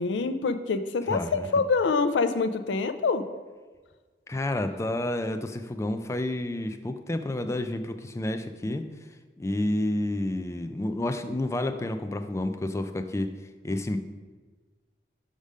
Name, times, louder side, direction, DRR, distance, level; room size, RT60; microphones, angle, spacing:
voice 1, 0.0-3.2, left 4 dB, 85° left, 10 dB, 0.5 m, -26 dB
voice 2, 1.1-1.5 4.3-8.9 9.4-13.3 13.6-14.0, left 1 dB, 15° left, 8 dB, 0.4 m, -30 dB
5.1 x 5.0 x 5.4 m, 1.4 s
head